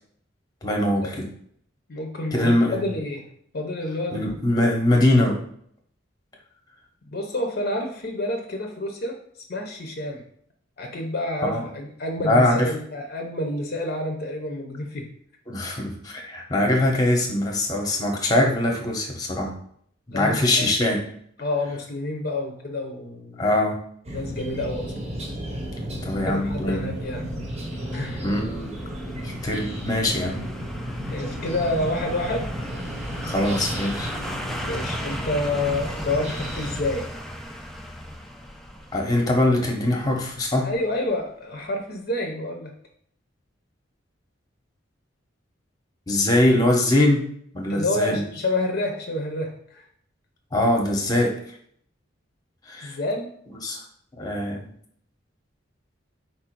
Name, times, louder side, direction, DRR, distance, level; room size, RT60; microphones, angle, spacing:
voice 1, 0.6-1.2 2.3-2.9 4.1-5.4 11.4-11.6 12.2-12.7 15.5-19.5 20.1-21.0 23.4-23.8 26.0-26.9 28.2-28.8 29.2-30.4 33.2-34.1 38.9-40.7 46.1-47.2 47.5-48.2 50.5-51.3 52.7-53.0 53.6-53.8 54.2-54.7, left 1 dB, 20° left, 0 dB, 0.8 m, -22 dB
voice 2, 1.9-3.2 3.5-4.3 7.1-9.2 9.5-10.2 10.8-15.1 20.1-20.7 21.4-23.4 24.1-24.9 26.2-27.3 27.9-28.2 31.1-32.5 34.6-37.1 40.6-42.7 47.7-49.8 52.8-53.3, left 1 dB, 50° left, 2 dB, 0.6 m, -28 dB
sound 1, 24.0-36.8, equal, 35° right, 0.7 m, -33 dB
sound 2, 25.9-40.9 41.2-41.3, equal, ahead, 0.3 m, -38 dB
4.4 x 2.5 x 4.4 m, 0.64 s
head